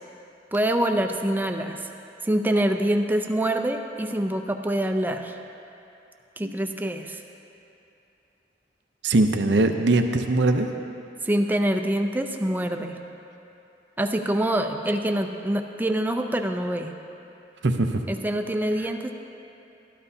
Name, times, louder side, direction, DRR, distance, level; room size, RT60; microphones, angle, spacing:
voice 1, 0.5-1.8 2.2-5.4 6.4-7.2 11.2-13.0 14.0-16.9 18.1-19.1, right 1 dB, 10° right, 5 dB, 0.5 m, -25 dB
voice 2, 9.0-10.7 17.6-18.0, right 2 dB, 75° right, 6 dB, 0.7 m, -21 dB
13.5 x 12.0 x 2.8 m, 2.8 s
head